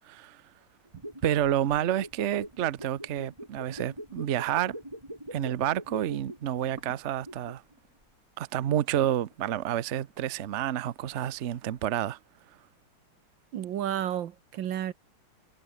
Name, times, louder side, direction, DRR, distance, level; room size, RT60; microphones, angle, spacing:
voice 1, 0.1-0.4 1.2-4.8 5.3-7.6 8.4-12.2, right 11 dB, 90° right, 0.6 m, -29 dB
sound 1, 0.9-7.7 8.0-8.1, right 1 dB, 10° right, 7.9 m, -43 dB
sound 2, 5.1-12.2, right 2 dB, 40° right, 7.2 m, -57 dB
voice 2, 13.5-14.9, right 11 dB, 65° right, 1.7 m, -31 dB
omnidirectional pair, 2.4 m